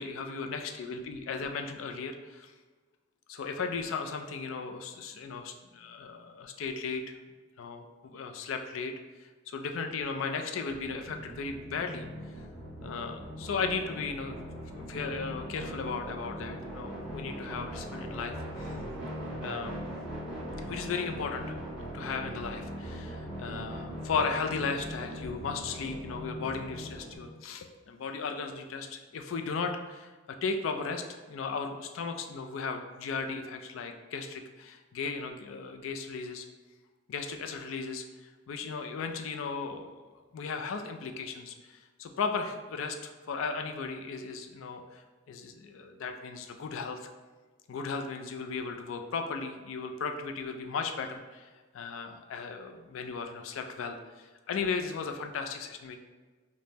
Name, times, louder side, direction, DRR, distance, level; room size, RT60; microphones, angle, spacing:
voice 1, 0.0-2.5 3.3-7.0 7.6-8.9 9.5-12.1 12.8-14.4 14.7-18.8 19.4-19.8 20.6-30.1 30.4-36.4 37.1-40.0 40.3-47.1 47.7-51.5 51.7-56.0, left 5 dB, 85° left, 5 dB, 0.4 m, -36 dB
sound 1, 10.7-27.2, equal, 5° right, 1.1 m, -40 dB
5.1 x 2.1 x 2.8 m, 1.3 s
head